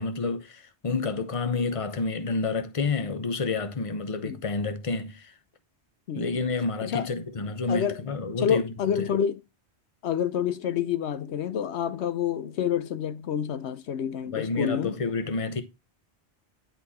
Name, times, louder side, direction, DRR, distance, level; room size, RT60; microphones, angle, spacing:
voice 1, 0.0-5.3 6.1-8.6 9.0-9.1 14.3-15.6, left 4 dB, 35° left, 1.0 m, -29 dB
voice 2, 6.1-6.4 6.8-7.1 7.7-8.0 8.4-9.4 10.0-15.0, left 8 dB, 90° left, 1.0 m, -28 dB
10.0 x 4.4 x 4.2 m
omnidirectional pair, 1.1 m